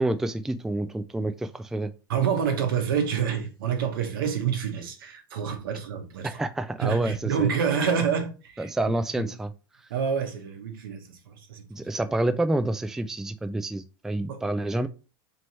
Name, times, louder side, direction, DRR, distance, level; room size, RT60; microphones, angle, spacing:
voice 1, 0.0-1.9 6.2-7.5 8.6-9.5 11.7-14.9, right 2 dB, 5° right, 0.3 m, -28 dB
voice 2, 2.1-6.4 6.8-8.7 9.2-9.3 9.9-11.9 14.3-14.4, right 7 dB, 75° right, 1.0 m, -28 dB
3.1 x 3.1 x 4.1 m
hypercardioid pair, 95°, 12 cm